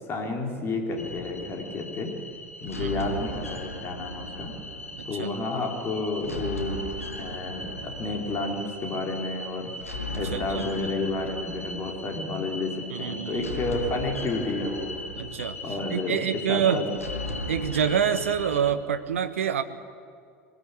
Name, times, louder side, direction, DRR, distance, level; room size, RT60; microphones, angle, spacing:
voice 1, 0.1-2.1 2.6-4.6 5.0-6.8 7.2-9.7 10.1-14.9 15.6-16.2 16.5-16.9, left 3 dB, 35° left, 2 dB, 4.2 m, -31 dB
sound 1, 1.0-18.7, left 1 dB, 85° left, 1.8 m, -37 dB
voice 2, 2.7-3.1 5.0-5.3 10.1-10.6 12.9-13.5 15.2-15.6 15.9-16.8 17.5-19.6, right 8 dB, 70° right, 10 dB, 1.3 m, -27 dB
24.0 x 20.0 x 8.6 m, 2.2 s
figure-of-eight pair, 75°, 7 cm